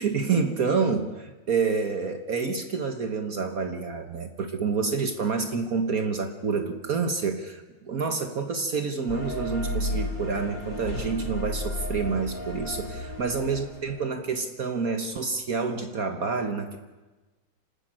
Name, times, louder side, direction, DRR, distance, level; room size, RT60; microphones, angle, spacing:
voice 1, 0.0-16.8, right 5 dB, 55° right, 7 dB, 1.6 m, -28 dB
sound 1, 9.1-14.1, left 1 dB, 85° left, 4.3 m, -33 dB
27.0 x 12.5 x 8.8 m, 1.2 s
omnidirectional pair, 1.9 m